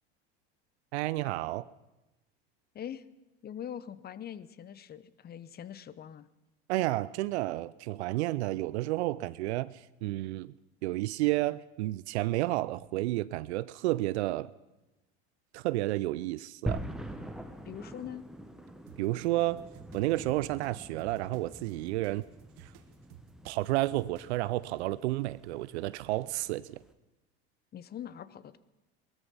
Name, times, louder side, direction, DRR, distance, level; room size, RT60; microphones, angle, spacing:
voice 1, 0.9-1.7 6.7-10.5 10.8-14.5 15.5-16.8 19.0-19.6 19.9-22.2 22.6-22.7 23.4-26.8, right 17 dB, 80° right, 0.5 m, -31 dB
voice 2, 3.4-6.3 17.6-18.2 27.7-28.6, left 9 dB, 30° left, 0.8 m, -42 dB
sound 1, 16.7-26.9, right 1 dB, ahead, 1.3 m, -44 dB
sound 2, 18.9-24.5, right 11 dB, 65° right, 1.8 m, -55 dB
19.0 x 13.5 x 5.5 m
hypercardioid pair, 95°, 33 cm